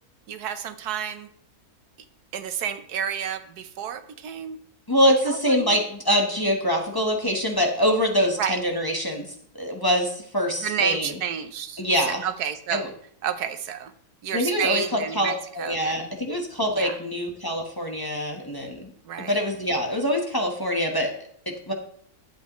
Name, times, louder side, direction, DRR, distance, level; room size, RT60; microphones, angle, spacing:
voice 1, 0.3-1.3 2.3-4.6 5.3-5.8 8.4-8.6 10.6-12.9 13.2-13.9 14.2-16.1 16.7-17.0 19.0-19.4, right 8 dB, 90° right, 10 dB, 1.3 m, -30 dB
voice 2, 4.9-11.1 11.8-12.2 12.7-12.9 14.3-18.9 19.2-21.1 21.5-21.7, equal, 15° left, 2 dB, 1.0 m, -24 dB
11.5 x 8.4 x 3.0 m, 0.65 s
omnidirectional pair, 1.6 m